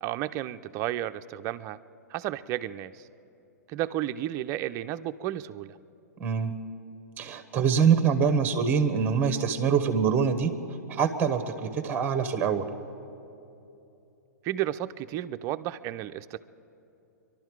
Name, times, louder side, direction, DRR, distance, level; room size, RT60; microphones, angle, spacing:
voice 1, 0.0-1.8 2.1-3.0 3.7-5.8 14.4-16.4, right 13 dB, 35° right, 10 dB, 0.5 m, -32 dB
voice 2, 6.2-6.6 7.2-10.5 10.9-12.7, right 6 dB, 20° right, 7 dB, 1.0 m, -24 dB
25.5 x 12.0 x 4.7 m, 2.8 s
hypercardioid pair, 115°, 9 cm